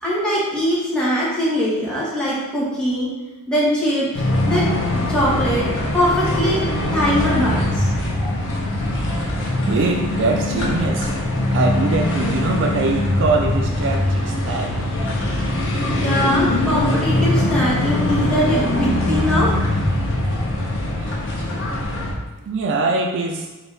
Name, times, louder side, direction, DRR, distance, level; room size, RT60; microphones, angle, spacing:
voice 1, 0.0-3.1 3.5-5.7 5.9-6.6 6.9-7.9 8.1-8.3 9.0-9.2 15.9-19.6 20.2-20.4, equal, 5° left, -8 dB, 1.1 m, -22 dB
sound 1, 4.1-22.1, left 1 dB, 60° left, 0.7 m, -22 dB
voice 2, 9.7-11.1 11.5-14.9 21.0-21.3 22.5-23.5, right 3 dB, 55° right, 2 dB, 0.3 m, -23 dB
4.0 x 2.6 x 3.3 m, 1.1 s
head